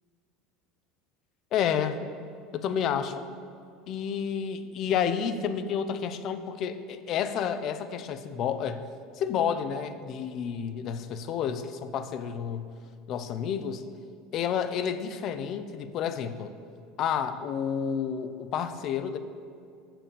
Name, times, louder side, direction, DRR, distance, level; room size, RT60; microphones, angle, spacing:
voice 1, 1.5-2.1 2.5-3.2 3.9-8.8 9.2-12.7 13.1-13.8 14.3-16.5 17.0-19.2, left 8 dB, 55° left, 11 dB, 0.6 m, -30 dB
6.7 x 5.9 x 7.0 m, 2.3 s
supercardioid pair, 95°, 0 cm